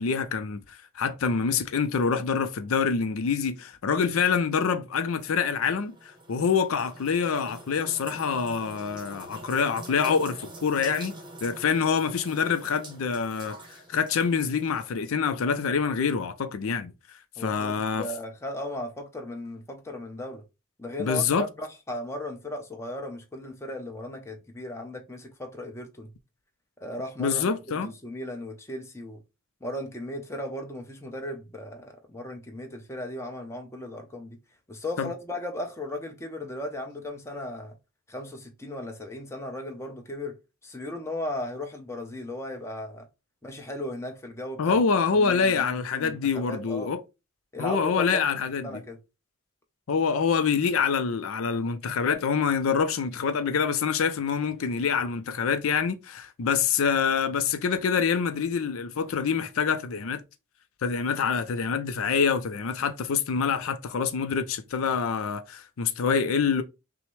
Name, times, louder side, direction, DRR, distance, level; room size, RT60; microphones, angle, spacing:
voice 1, 0.0-5.9 6.3-11.1 11.4-18.1 21.0-21.5 27.2-27.9 35.0-35.1 44.6-47.0 47.6-48.8 49.9-60.2 60.8-66.6, left 6 dB, 75° left, 0.4 m, -26 dB
sound 1, 5.2-14.8, right 2 dB, 20° right, 0.9 m, -45 dB
voice 2, 17.4-20.4 20.8-26.1 26.8-29.2 29.6-34.4 34.7-37.8 38.1-40.4 40.6-43.1 43.4-44.8 45.1-47.0 47.5-48.2 48.6-49.0, left 1 dB, 15° left, 0.7 m, -36 dB
5.7 x 2.1 x 3.1 m
head